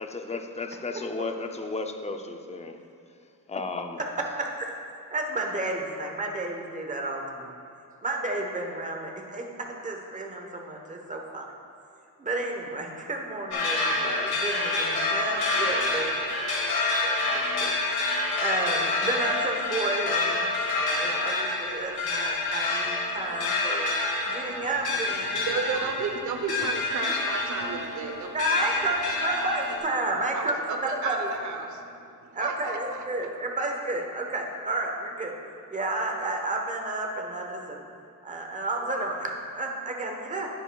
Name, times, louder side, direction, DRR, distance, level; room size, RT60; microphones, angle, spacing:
voice 1, 0.0-2.8 3.1-3.2 3.5-4.0, left 3 dB, 20° left, 5 dB, 0.4 m, -34 dB
voice 2, 4.4-4.7 5.1-7.5 8.0-11.5 12.2-17.7 18.4-23.9 24.2-25.6 28.3-31.4 32.3-35.3 35.7-37.9 38.2-40.5, right 2 dB, 20° right, 1 dB, 1.0 m, -31 dB
sound 1, 13.5-29.8, left 2 dB, 70° left, 1.7 m, -28 dB
voice 3, 25.4-29.0 29.4-29.5 30.3-30.5 31.0-31.2 31.4-31.6 32.4-32.8, right 5 dB, 50° right, 4 dB, 0.8 m, -32 dB
11.0 x 10.0 x 2.3 m, 2.5 s
cardioid pair, 140°, 39 cm